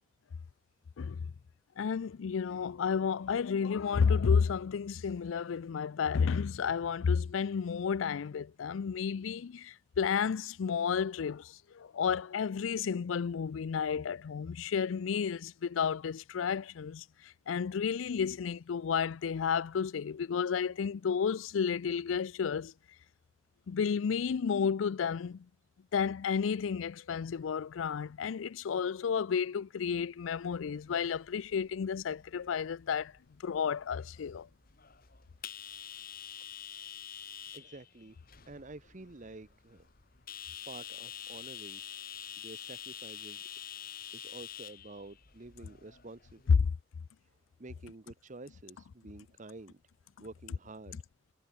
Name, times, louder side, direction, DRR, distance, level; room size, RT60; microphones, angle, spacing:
voice 1, 1.8-22.7 23.7-25.5 25.9-33.1 33.4-34.5 46.5-46.6, left 6 dB, 90° left, 0.4 m, -31 dB
sound 1, 30.4-46.5, left 9 dB, 50° left, 1.8 m, -47 dB
voice 2, 37.5-38.2 38.5-39.9 40.7-41.8 42.4-43.4 44.1-46.6 47.6-49.8 50.2-51.0, right 2 dB, 40° right, 1.0 m, -49 dB
head